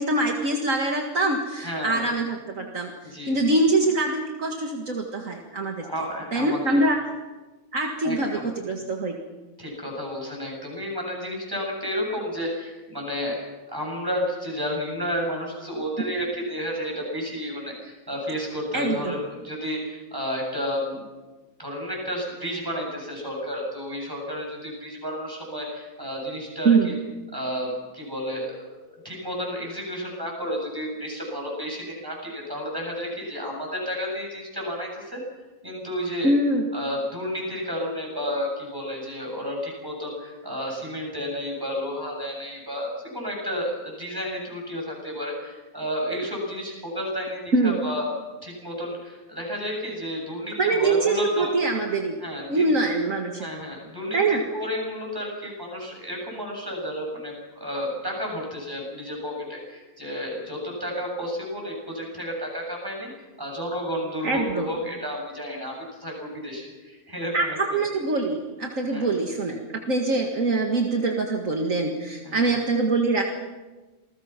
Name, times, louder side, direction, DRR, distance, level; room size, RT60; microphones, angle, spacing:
voice 1, 0.0-5.9 6.3-7.0 7.7-9.2 18.7-19.1 26.6-27.0 36.2-36.6 47.5-47.8 50.6-52.2 52.5-53.5 54.1-54.4 64.2-64.7 67.3-73.2, right 2 dB, 60° right, 1 dB, 2.3 m, -24 dB
voice 2, 1.6-2.0 3.0-3.5 5.8-6.8 8.0-8.5 9.6-13.4 13.7-21.1 21.6-26.9 27.3-28.6 29.0-35.2 35.6-36.3 36.7-48.1 48.4-51.5 52.2-52.8 53.4-63.1 63.4-67.8 68.9-69.1 70.1-70.2 72.2-72.7, equal, 15° right, -1 dB, 8.1 m, -31 dB
28.0 x 20.0 x 6.0 m, 1.2 s
omnidirectional pair, 1.6 m